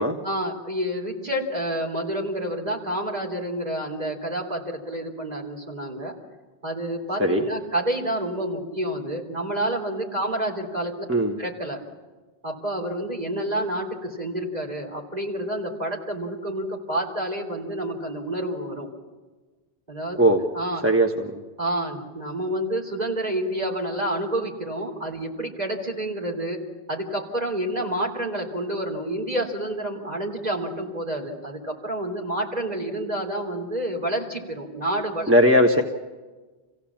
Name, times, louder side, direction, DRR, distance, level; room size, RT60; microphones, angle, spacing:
voice 1, 0.2-6.1 6.6-10.9 11.4-11.8 12.4-18.9 19.9-20.2 20.5-20.8 21.6-26.6 26.9-35.3, right 1 dB, 40° right, 1 dB, 3.7 m, -29 dB
voice 2, 20.8-21.4 35.3-35.8, equal, 15° right, 2 dB, 1.2 m, -18 dB
27.5 x 16.0 x 7.3 m, 1.3 s
omnidirectional pair, 1.1 m